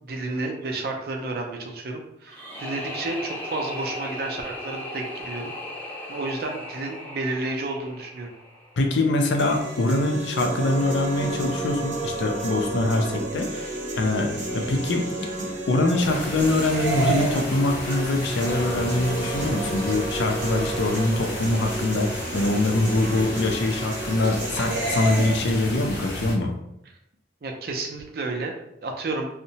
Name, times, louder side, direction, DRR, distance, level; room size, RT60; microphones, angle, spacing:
voice 1, 0.0-5.5 6.1-8.3 27.4-28.5 28.8-29.3, right 2 dB, 55° right, 2 dB, 0.4 m, -31 dB
sound 1, 2.3-9.2, left 1 dB, 10° left, 0.4 m, -37 dB
voice 2, 8.8-15.1 15.7-26.5, left 2 dB, 75° left, 3 dB, 0.4 m, -24 dB
sound 2, 9.4-25.4, right 2 dB, 80° right, 0.7 m, -31 dB
sound 3, 16.0-26.3, left 1 dB, 50° left, 0.7 m, -34 dB
2.7 x 2.1 x 2.8 m, 0.83 s
head